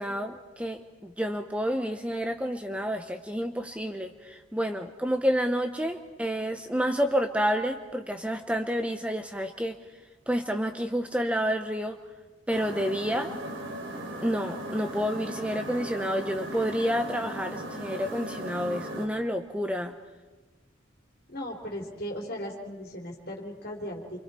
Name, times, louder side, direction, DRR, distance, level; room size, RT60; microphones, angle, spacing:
voice 1, 0.0-9.8 10.3-12.0 12.5-13.3 14.2-19.9, equal, 5° right, 6 dB, 0.8 m, -29 dB
sound 1, 12.5-19.1, right 1 dB, 80° right, 3.3 m, -37 dB
voice 2, 21.3-24.2, equal, 50° left, 0 dB, 3.8 m, -37 dB
28.5 x 26.0 x 4.5 m, 1.3 s
head